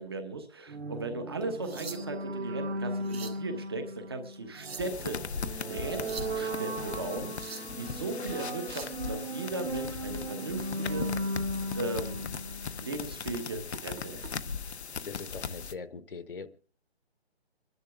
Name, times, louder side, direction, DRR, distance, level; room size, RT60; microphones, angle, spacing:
voice 1, 0.0-11.1 11.7-12.3 12.8-14.4, right 2 dB, 20° right, 7 dB, 1.1 m, -37 dB
sound 1, 0.7-13.2, right 1 dB, 80° right, 2.1 m, -37 dB
sound 2, 1.4-2.3 2.8-3.4 4.3-5.1 5.8-6.4 7.1-7.8 8.5-9.0 11.0-11.2 11.7-11.9 12.4-12.5 13.7-14.3 15.4-15.6, right 5 dB, 65° right, 2.2 m, -45 dB
sound 3, 4.8-15.7, left 6 dB, 75° left, 0.9 m, -39 dB
voice 2, 15.0-16.5, left 5 dB, 55° left, 12 dB, 1.1 m, -41 dB
28.0 x 11.0 x 3.6 m, 0.43 s
hypercardioid pair, 175°, 33 cm